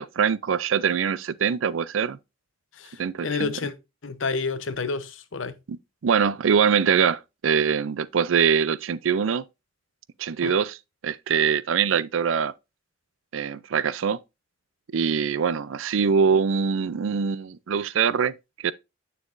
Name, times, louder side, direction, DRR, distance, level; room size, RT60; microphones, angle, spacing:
voice 1, 0.0-2.2 3.0-3.5 5.7-5.8 6.0-9.4 10.2-10.8 11.0-12.5 13.3-14.2 14.9-18.3 18.6-18.7, right 6 dB, 90° right, 0.4 m, -23 dB
voice 2, 2.7-3.7 4.0-5.6 10.4-10.6, left 4 dB, 85° left, 0.8 m, -30 dB
9.3 x 6.7 x 2.5 m
head